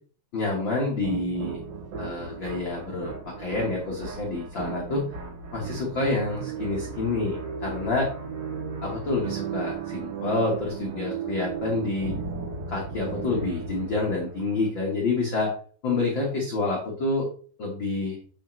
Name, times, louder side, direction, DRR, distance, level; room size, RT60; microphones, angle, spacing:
voice 1, 0.3-1.6 2.0-5.0 5.5-8.1 8.8-12.2 12.7-15.5 15.8-17.3 17.6-18.2, left 3 dB, 85° left, -3 dB, 1.0 m, -28 dB
sound 1, 1.0-14.7, right 5 dB, 80° right, 4.9 m, -35 dB
8.1 x 6.1 x 3.2 m, 0.44 s
omnidirectional pair, 4.8 m